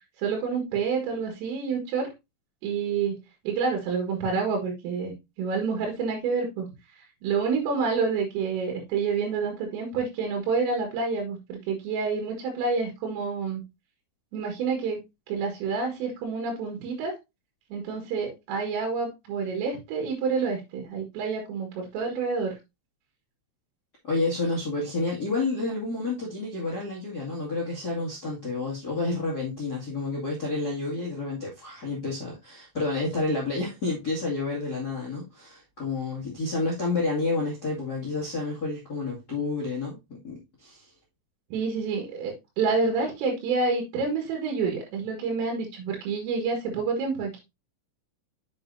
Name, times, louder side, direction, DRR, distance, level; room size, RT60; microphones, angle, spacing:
voice 1, 0.2-2.1 2.6-3.2 3.5-5.1 5.4-6.7 7.0-13.6 14.3-15.0 15.3-17.2 17.7-22.6 41.5-47.4, right 5 dB, 90° right, 4.4 m, -28 dB
voice 2, 24.0-40.9, left 3 dB, 60° left, 1.0 m, -30 dB
7.3 x 7.0 x 2.6 m
omnidirectional pair, 5.7 m